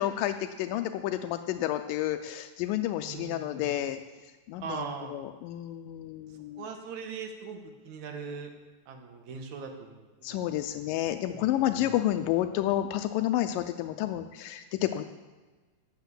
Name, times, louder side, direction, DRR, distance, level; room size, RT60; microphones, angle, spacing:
voice 1, 0.0-4.0 4.5-6.7 10.2-15.0, left 13 dB, 80° left, 8 dB, 2.0 m, -30 dB
voice 2, 3.0-3.8 4.6-5.1 6.6-8.5 8.9-10.5 11.3-12.0, right 5 dB, 60° right, 3 dB, 2.5 m, -40 dB
12.5 x 8.2 x 8.1 m, 1.3 s
omnidirectional pair, 4.4 m